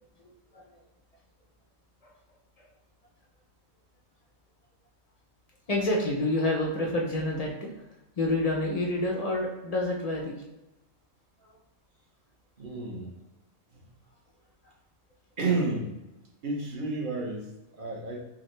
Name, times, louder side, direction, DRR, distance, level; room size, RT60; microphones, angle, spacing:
voice 1, 0.5-0.8 2.0-2.1 5.7-7.9 8.2-10.4 11.4-11.6 14.6-14.7, left 1 dB, 50° left, -2 dB, 0.4 m, -28 dB
voice 2, 12.6-13.2 13.7-13.8 15.4-15.9 16.4-18.2, right 3 dB, 45° right, -1 dB, 0.8 m, -31 dB
4.8 x 2.2 x 3.1 m, 0.96 s
omnidirectional pair, 1.5 m